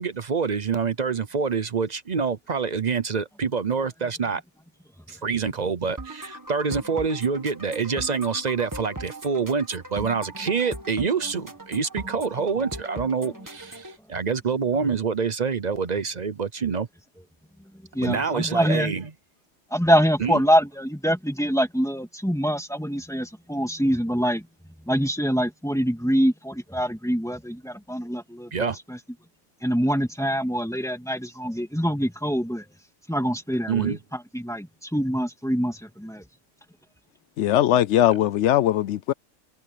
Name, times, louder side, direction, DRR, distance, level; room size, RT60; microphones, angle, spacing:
voice 1, 0.0-4.4 5.1-16.9 18.0-19.1 20.2-20.4 28.5-28.8 33.7-34.0, right 5 dB, 40° right, 0.7 m, -26 dB
sound 1, 6.0-14.0, right 2 dB, 15° right, 1.8 m, -39 dB
voice 2, 17.9-18.9 19.7-24.5 24.9-29.0 29.6-32.6 33.1-34.0 34.3-36.2, equal, ahead, 2.0 m, -25 dB
voice 3, 37.4-39.1, left 12 dB, 70° left, 0.8 m, -20 dB
omnidirectional pair, 1.4 m